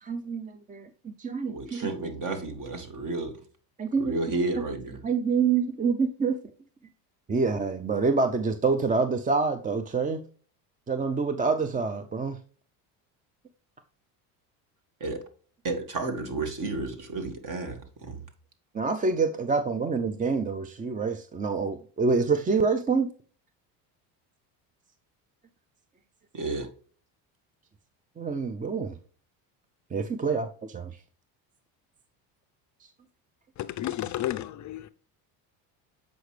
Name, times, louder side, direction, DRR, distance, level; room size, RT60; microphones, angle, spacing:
voice 1, 0.0-1.9 3.8-4.1 5.0-6.4 7.3-10.2 10.9-12.4 18.7-23.1 28.2-29.0 29.9-31.0, right 4 dB, 20° right, 0.6 m, -27 dB
voice 2, 1.5-3.4 4.0-5.0 15.0-15.2 15.6-18.2 26.3-26.7, right 2 dB, 45° right, 2.1 m, -32 dB
voice 3, 33.6-34.9, left 13 dB, 40° left, 0.5 m, -32 dB
7.8 x 5.1 x 3.3 m
supercardioid pair, 80°, 46 cm